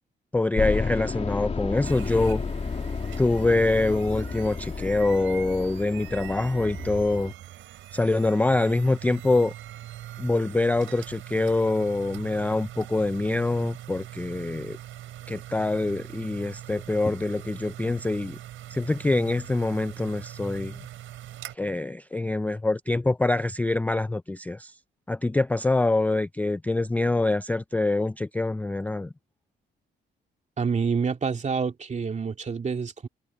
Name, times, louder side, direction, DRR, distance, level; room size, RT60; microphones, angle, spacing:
voice 1, 0.3-2.4 3.2-7.3 7.9-9.5 10.2-14.8 15.3-18.4 18.7-20.8 21.5-24.7 25.1-29.1, left 2 dB, 10° left, 0.4 m, -25 dB
sound 1, 0.6-7.3, left 4 dB, 30° left, 2.6 m, -32 dB
sound 2, 1.7-21.5, right 13 dB, 85° right, 5.6 m, -42 dB
voice 2, 30.6-33.1, right 5 dB, 35° right, 2.4 m, -27 dB
cardioid pair, 90°, 20 cm